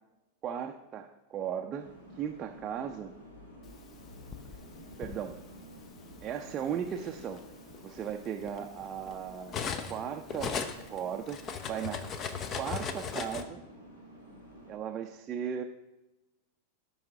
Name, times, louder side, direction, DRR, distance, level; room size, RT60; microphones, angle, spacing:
voice 1, 0.4-3.1 5.0-5.4 6.2-7.4 7.8-9.5 9.9-10.6 10.9-12.1 12.6-13.6 14.7-15.6, right 8 dB, 30° right, 3 dB, 0.5 m, -36 dB
sound 1, 1.8-14.7, equal, 70° left, 2.1 m, -52 dB
Cutlery silverware, 3.9-5.2 6.1-6.3 6.7-10.0 10.3-13.4, left 6 dB, 30° left, 0.7 m, -38 dB
13.0 x 5.5 x 3.6 m, 1.0 s
figure-of-eight pair, 90°, 0 cm